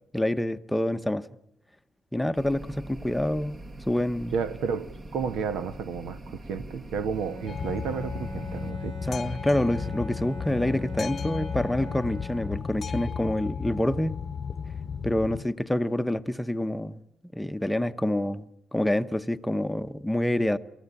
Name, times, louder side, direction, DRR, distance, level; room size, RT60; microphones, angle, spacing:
voice 1, 0.1-1.3 2.1-3.6 3.9-4.3 9.1-14.2 15.0-17.0 17.3-20.6, left 1 dB, 5° left, 0.8 m, -27 dB
sound 1, 2.3-8.7, right 1 dB, 35° right, 1.7 m, -43 dB
voice 2, 4.3-9.0, right 6 dB, 85° right, 1.2 m, -32 dB
Bowed string instrument, 7.1-12.9, equal, 65° right, 5.2 m, -41 dB
Boat Water vehicle, 7.5-15.4, left 6 dB, 45° left, 0.8 m, -34 dB
28.0 x 14.5 x 8.8 m
cardioid pair, 90°, 0 cm